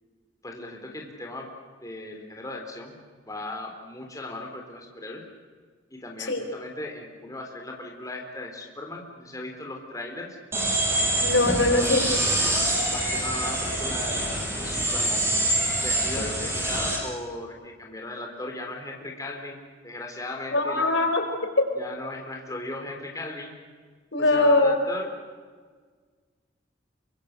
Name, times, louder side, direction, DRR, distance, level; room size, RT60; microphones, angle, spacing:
voice 1, 0.4-1.5 1.8-2.9 3.3-5.2 5.9-10.4 11.5-11.9 12.9-15.3 15.8-21.1 21.8-23.5 24.3-25.1, left 2 dB, 20° left, 1 dB, 3.8 m, -37 dB
sound 1, 10.5-17.0, right 1 dB, 15° right, 6.9 m, -25 dB
voice 2, 11.2-12.0 20.5-21.7 24.1-24.7, left 2 dB, 75° left, 5 dB, 4.6 m, -21 dB
28.0 x 25.0 x 6.7 m, 1.6 s
head